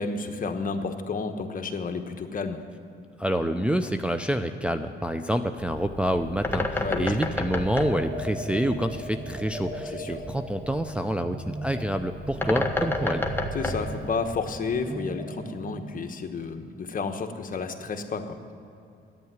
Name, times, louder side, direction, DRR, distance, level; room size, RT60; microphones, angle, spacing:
voice 1, 0.0-2.6 6.8-7.2 9.9-10.2 13.5-18.5, left 4 dB, 45° left, 6 dB, 1.2 m, -31 dB
voice 2, 3.2-13.2, right 1 dB, 5° right, 5 dB, 0.5 m, -27 dB
Bird, 5.6-14.8, left 2 dB, 10° left, 1.1 m, -32 dB
sound 1, 7.7-16.0, right 1 dB, 30° right, 1.4 m, -38 dB
10.5 x 9.1 x 9.5 m, 2.6 s
cardioid pair, 90°, 20 cm